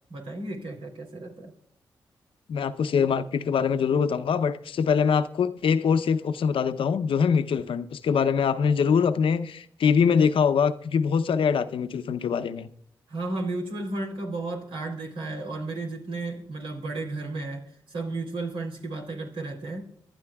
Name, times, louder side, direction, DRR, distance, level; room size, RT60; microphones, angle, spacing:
voice 1, 0.1-1.5 13.1-19.8, right 2 dB, 80° right, 3.3 m, -33 dB
voice 2, 2.5-12.7, left 6 dB, 75° left, 0.7 m, -23 dB
24.0 x 11.5 x 2.3 m
supercardioid pair, 40°, 9 cm